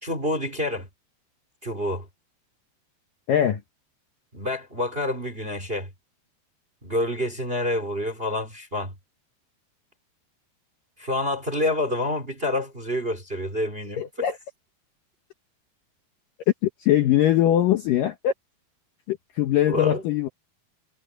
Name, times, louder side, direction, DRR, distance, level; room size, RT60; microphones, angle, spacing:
voice 1, 0.0-0.9 1.6-2.1 4.3-5.9 6.8-8.9 11.0-14.0 19.6-20.0, left 1 dB, 15° right, 2.3 m, -27 dB
voice 2, 3.3-3.6 14.0-14.4 16.6-18.3 19.1-20.3, left 11 dB, 70° left, 2.2 m, -21 dB
omnidirectional pair, 5.1 m